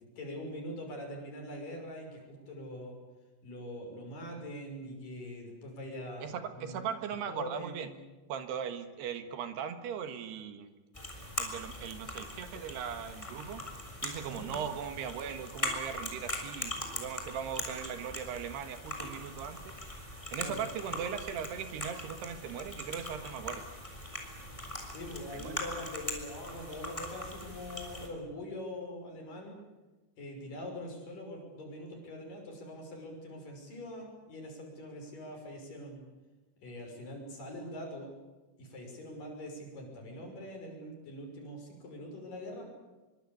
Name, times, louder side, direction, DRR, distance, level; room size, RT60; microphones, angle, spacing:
voice 1, 0.2-2.9 3.4-6.8 7.3-7.9 14.2-14.6 20.4-20.6 24.9-29.6 30.2-36.0 36.6-38.1 38.6-42.7, left 1 dB, 45° left, 1 dB, 7.6 m, -43 dB
voice 2, 6.2-7.9 8.3-10.7 11.4-13.6 14.0-19.6 20.3-23.6 25.3-25.6, right 8 dB, 70° right, 8 dB, 3.4 m, -39 dB
sound 1, 10.9-28.1, left 1 dB, 5° left, 3.4 m, -41 dB
25.0 x 23.5 x 8.6 m, 1.2 s
omnidirectional pair, 5.4 m